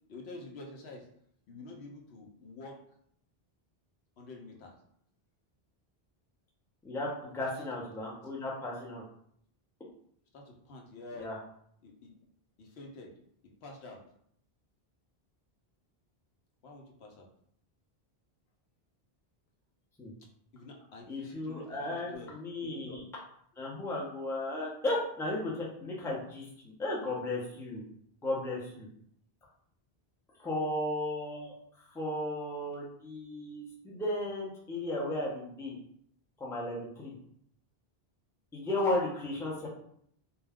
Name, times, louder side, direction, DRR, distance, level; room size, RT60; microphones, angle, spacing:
voice 1, 0.1-1.1 1.5-2.8 4.2-4.8 7.6-7.7 10.3-11.3 11.8-12.2 12.6-13.1 13.6-14.0 16.6-17.3 20.5-22.3 22.6-23.1, left 2 dB, 85° left, 0 dB, 0.9 m, -48 dB
voice 2, 6.8-9.0 11.2-11.4 20.0-20.1 21.1-23.0 23.6-27.8 28.2-28.9 30.4-35.8 36.4-37.1 38.5-39.7, left 1 dB, 5° left, -4 dB, 0.4 m, -35 dB
2.2 x 2.2 x 3.4 m, 0.68 s
omnidirectional pair, 1.0 m